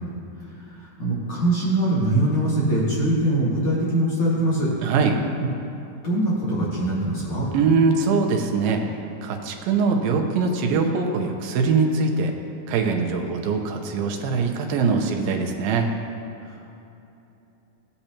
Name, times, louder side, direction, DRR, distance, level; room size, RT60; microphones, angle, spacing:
voice 1, 0.7-4.7 5.4-5.5 6.0-7.5 16.4-16.7, right 1 dB, 40° left, -8 dB, 2.3 m, -23 dB
voice 2, 4.8-5.2 7.5-8.8 9.2-12.3 12.7-15.9, right 4 dB, 90° right, 3 dB, 2.7 m, -22 dB
17.0 x 8.3 x 2.9 m, 2.9 s
omnidirectional pair, 4.1 m